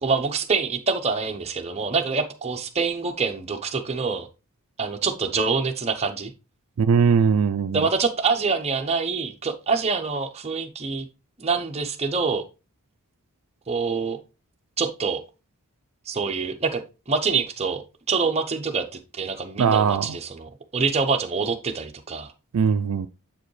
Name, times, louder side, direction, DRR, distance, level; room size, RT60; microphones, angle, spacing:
voice 1, 0.0-4.3 4.8-6.3 7.7-11.1 11.4-12.4 13.7-14.2 14.8-15.2 16.1-22.3, right 4 dB, 30° right, 0.7 m, -26 dB
voice 2, 6.8-7.9 19.6-20.2 22.5-23.1, right 6 dB, 70° right, 0.4 m, -20 dB
7.4 x 4.8 x 3.1 m
head